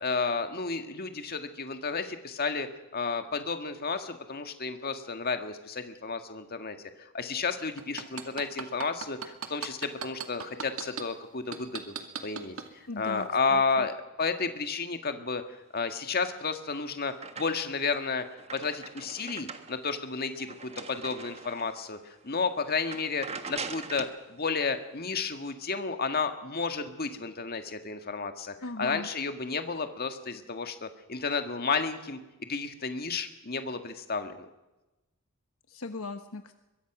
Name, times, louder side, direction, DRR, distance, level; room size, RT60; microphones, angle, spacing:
voice 1, 0.0-2.7 2.9-11.9 12.2-12.6 13.0-18.3 18.5-34.5, left 4 dB, 45° left, 7 dB, 1.8 m, -32 dB
sound 1, 7.8-11.0 11.5-12.7 13.1-13.3, right 6 dB, 65° right, 2.2 m, -36 dB
voice 2, 12.9-13.9 28.6-29.1 35.7-36.6, left 3 dB, 70° left, 8 dB, 1.1 m, -39 dB
sound 2, 16.4-17.8 18.2-21.8 22.3-22.4 22.8-24.2, right 5 dB, 30° right, 1.4 m, -42 dB
23.0 x 22.0 x 6.1 m, 1.0 s
head